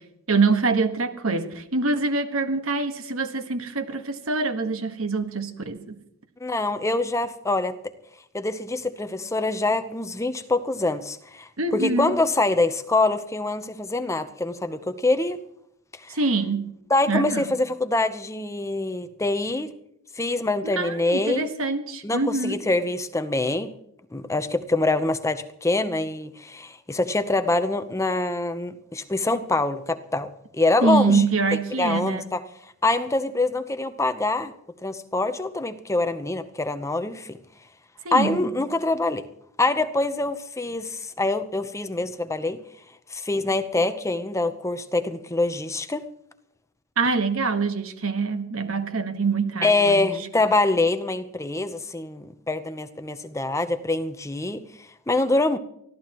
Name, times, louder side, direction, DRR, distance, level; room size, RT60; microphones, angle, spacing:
voice 1, 0.3-6.0 11.6-12.1 16.1-16.7 17.1-17.4 20.6-22.6 30.8-32.2 38.0-38.5 47.0-50.2, right 3 dB, 80° right, 8 dB, 1.5 m, -25 dB
voice 2, 6.4-7.8 8.3-15.4 16.0-16.2 16.9-19.7 20.2-21.5 22.0-23.7 24.1-32.4 32.8-34.5 34.8-37.4 38.1-39.2 39.6-42.6 43.1-46.1 49.6-54.6 55.1-55.6, left 2 dB, 15° left, 10 dB, 0.8 m, -25 dB
24.0 x 15.5 x 3.0 m, 0.75 s
head